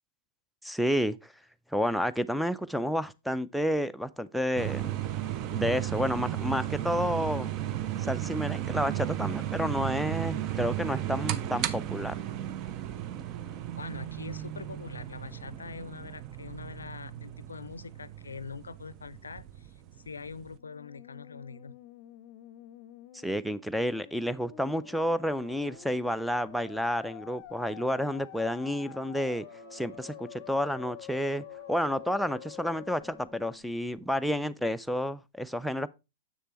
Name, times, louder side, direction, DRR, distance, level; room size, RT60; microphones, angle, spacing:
voice 1, 0.6-1.2 1.7-5.0 5.5-7.5 8.0-12.2 23.2-29.5 29.7-35.9, equal, ahead, 0.4 m, -30 dB
sound 1, 4.6-20.5, right 13 dB, 40° right, 0.6 m, -35 dB
voice 2, 13.8-19.7 20.0-21.8, left 5 dB, 85° left, 0.4 m, -43 dB
Musical instrument, 20.5-33.5, left 15 dB, 45° left, 0.6 m, -49 dB
sound 2, 24.8-34.3, right 4 dB, 85° right, 4.8 m, -57 dB
7.5 x 6.6 x 3.0 m
hypercardioid pair, 110°, 0 cm